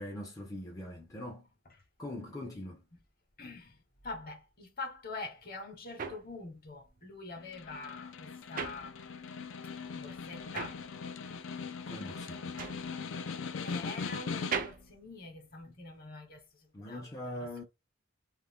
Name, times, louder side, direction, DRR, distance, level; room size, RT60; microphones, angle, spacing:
voice 1, 0.0-1.5 2.0-2.8 11.8-12.6 16.7-17.6, left 1 dB, 20° left, 0.5 m, -42 dB
voice 2, 3.4-3.8 4.0-9.0 9.9-10.8 13.6-16.4 16.8-17.0 17.4-17.6, left 3 dB, 50° left, 1.0 m, -44 dB
sound 1, 5.2-9.5 9.8-16.0, right 6 dB, 45° right, 0.5 m, -42 dB
Snare drum, 7.4-14.9, left 5 dB, 75° left, 0.4 m, -40 dB
2.5 x 2.5 x 3.5 m
head